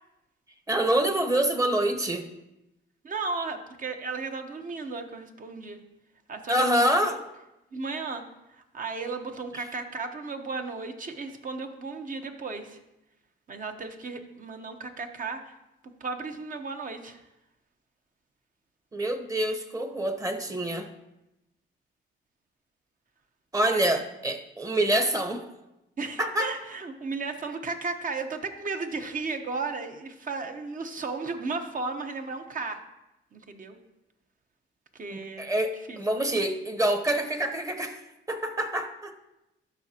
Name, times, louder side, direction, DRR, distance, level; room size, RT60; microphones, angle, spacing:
voice 1, 0.7-2.2 6.5-7.1 18.9-20.9 23.5-25.4 26.2-26.5 35.1-38.0 38.3-39.1, right 1 dB, 15° right, 6 dB, 1.0 m, -26 dB
voice 2, 3.0-5.8 6.3-7.2 7.7-8.2 8.5-12.8 13.5-15.5 16.0-17.2 23.6-24.0 26.0-32.8 33.3-33.8 35.0-35.5 35.9-36.0, right 4 dB, 40° right, 6 dB, 1.0 m, -35 dB
12.5 x 6.0 x 2.9 m, 0.91 s
cardioid pair, 90°, 20 cm